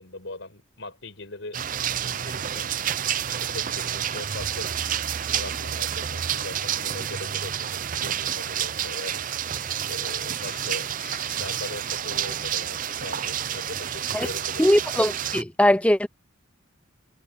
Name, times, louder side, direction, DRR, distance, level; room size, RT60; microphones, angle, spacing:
voice 1, 0.0-1.6 2.1-2.7 3.3-4.7 5.2-9.2 9.8-14.8, left 2 dB, 65° left, 5.6 m, -40 dB
sound 1, 1.5-15.4, right 9 dB, 40° right, 0.5 m, -29 dB
voice 2, 14.6-16.1, left 1 dB, 5° left, 0.5 m, -20 dB
head